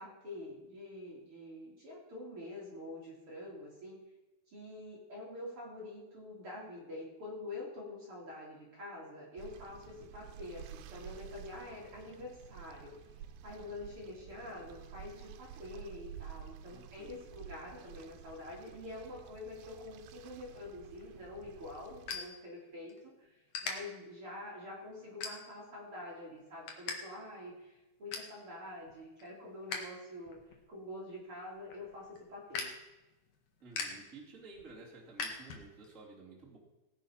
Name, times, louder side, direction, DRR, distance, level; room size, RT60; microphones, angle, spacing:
voice 1, 0.0-4.0 4.5-12.9 13.4-30.4 30.7-32.7, left 2 dB, 40° right, -3 dB, 3.4 m, -46 dB
sound 1, 9.4-22.2, right 9 dB, 85° right, 2.6 m, -51 dB
voice 2, 16.7-17.4 33.6-36.6, right 3 dB, 20° right, -4 dB, 3.0 m, -53 dB
sound 2, 20.9-23.0 23.5-23.7 24.3-24.5 25.2-25.8 26.2-27.0 27.3-27.4 27.7-28.4 28.8-29.9 30.2-35.9, left 5 dB, 55° left, 2.8 m, -42 dB
18.0 x 9.5 x 5.8 m, 1.0 s
omnidirectional pair, 4.2 m